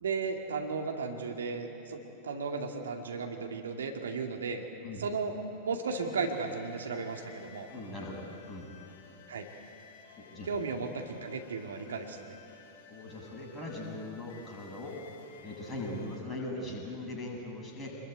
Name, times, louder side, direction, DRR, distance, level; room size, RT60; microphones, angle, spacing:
voice 1, 0.0-4.6 4.9-5.4 5.6-7.7 9.3-9.5 10.4-12.3, right 4 dB, 65° right, 3 dB, 2.2 m, -35 dB
sound 1, 5.8-16.2, left 5 dB, 55° left, 6.5 m, -55 dB
voice 2, 7.7-8.2 8.5-8.7 10.2-10.5 12.9-15.0 15.4-17.9, left 1 dB, 15° left, -1 dB, 7.9 m, -40 dB
27.5 x 21.5 x 9.4 m, 2.9 s
figure-of-eight pair, 90°, 0 cm